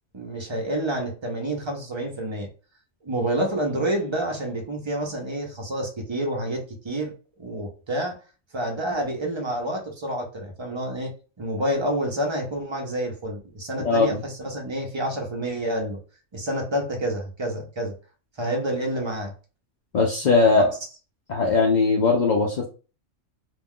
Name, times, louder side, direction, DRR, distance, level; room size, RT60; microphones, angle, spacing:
voice 1, 0.1-2.5 3.0-7.1 7.4-8.2 8.5-11.1 11.4-16.0 16.3-17.9 18.4-19.3 20.5-20.7, right 1 dB, 30° right, 0.5 m, -28 dB
voice 2, 13.8-14.2 19.9-20.7 21.3-22.7, left 4 dB, 60° left, 0.4 m, -19 dB
2.5 x 2.3 x 3.6 m
omnidirectional pair, 1.4 m